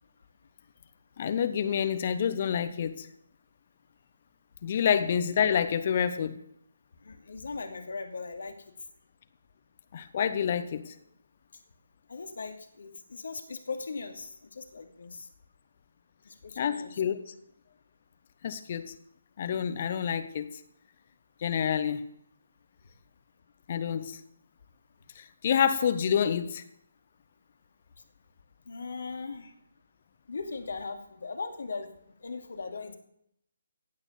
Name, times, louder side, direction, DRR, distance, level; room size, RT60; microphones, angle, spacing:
voice 1, 1.2-3.1 4.6-6.4 9.9-10.9 16.6-17.2 18.4-18.9 19.4-20.5 21.4-22.1 23.7-24.2 25.2-26.6, left 8 dB, 35° left, 11 dB, 1.1 m, -28 dB
voice 2, 7.0-8.6 12.1-15.3 16.2-17.0 28.7-29.5 30.3-31.9 32.2-33.0, left 4 dB, 55° left, 5 dB, 2.5 m, -39 dB
16.5 x 8.7 x 7.0 m, 0.74 s
figure-of-eight pair, 145°, 0 cm